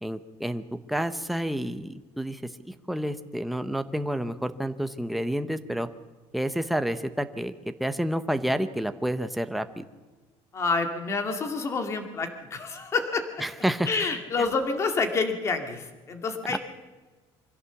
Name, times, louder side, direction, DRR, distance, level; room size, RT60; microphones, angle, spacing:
voice 1, 0.0-0.6 0.9-5.9 6.3-9.8 13.4-13.9 14.4-14.5 16.5-16.6, equal, ahead, 9 dB, 0.8 m, -29 dB
voice 2, 10.5-13.2 13.9-16.6, left 4 dB, 25° left, 6 dB, 2.1 m, -28 dB
24.5 x 16.0 x 7.1 m, 1.3 s
cardioid pair, 175°, 11 cm